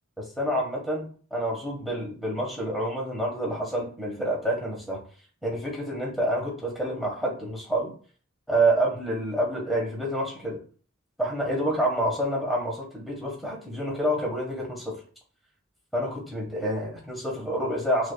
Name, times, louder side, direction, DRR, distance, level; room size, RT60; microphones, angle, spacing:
voice 1, 0.2-5.0 5.4-7.9 8.5-10.6 11.2-14.9 15.9-18.1, right 1 dB, ahead, -3 dB, 1.1 m, -28 dB
5.9 x 2.6 x 2.2 m, 0.40 s
head